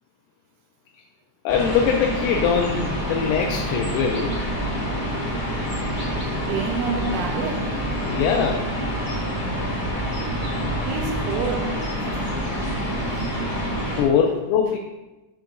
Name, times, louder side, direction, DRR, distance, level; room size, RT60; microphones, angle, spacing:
voice 1, 1.5-4.3 7.0-7.2 8.0-8.6 14.0-14.8, left 7 dB, 90° left, 2.1 m, -22 dB
sound 1, 1.5-14.0, equal, 30° left, 0.9 m, -27 dB
voice 2, 6.5-7.8 10.9-11.8 14.0-14.1, right 5 dB, 90° right, 2.2 m, -29 dB
6.1 x 5.8 x 3.7 m
omnidirectional pair, 3.6 m